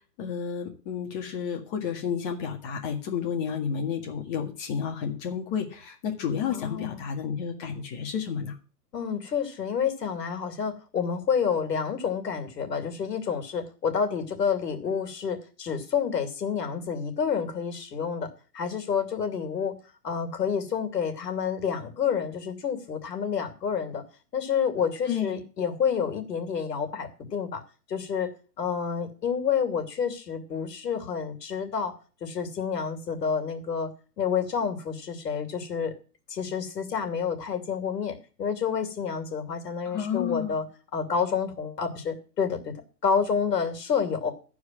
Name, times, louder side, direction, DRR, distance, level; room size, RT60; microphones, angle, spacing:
voice 1, 0.2-8.6 25.0-25.4 39.9-40.6, left 7 dB, 30° left, 2 dB, 1.9 m, -31 dB
voice 2, 6.5-7.0 8.9-18.3 18.5-19.7 20.0-24.0 24.3-27.6 27.9-28.3 28.6-32.0 32.2-33.9 34.2-35.9 36.3-40.6 40.9-42.7 43.0-44.3, left 6 dB, 75° left, 6 dB, 2.7 m, -29 dB
13.0 x 4.8 x 7.4 m, 0.37 s
hypercardioid pair, 155°, 49 cm